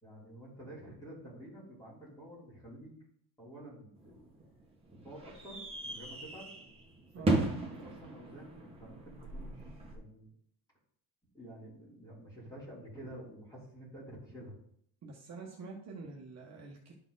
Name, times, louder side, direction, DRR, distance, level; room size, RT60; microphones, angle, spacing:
voice 1, 0.0-2.9 3.4-4.2 4.9-6.5 7.1-10.3 11.3-14.5, right 1 dB, 10° left, -7 dB, 3.2 m, -50 dB
sound 1, 3.9-9.9, right 2 dB, 15° right, 1.3 m, -37 dB
voice 2, 7.1-7.5 15.0-16.9, right 3 dB, 40° right, -2 dB, 1.2 m, -46 dB
12.0 x 4.5 x 3.9 m, 0.67 s
cardioid pair, 170°, 41 cm